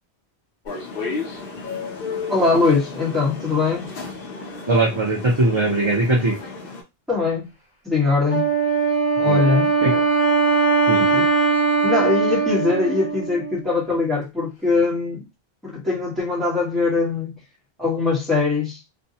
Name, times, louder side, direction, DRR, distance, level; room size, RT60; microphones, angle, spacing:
sound 1, 0.7-6.8, left 4 dB, 60° left, 0.9 m, -33 dB
voice 1, 2.3-3.9 7.1-7.5 7.8-8.5 9.2-10.0 11.1-11.3 11.8-15.3 15.6-17.4 17.8-18.8, left 4 dB, ahead, 0.9 m, -21 dB
voice 2, 4.7-6.4 9.2-9.5 9.8-9.9 10.9-11.1, right 2 dB, 40° right, 0.4 m, -20 dB
Wind instrument woodwind instrument, 8.3-13.7, right 4 dB, 40° left, 1.2 m, -20 dB
2.6 x 2.2 x 2.6 m
omnidirectional pair, 1.1 m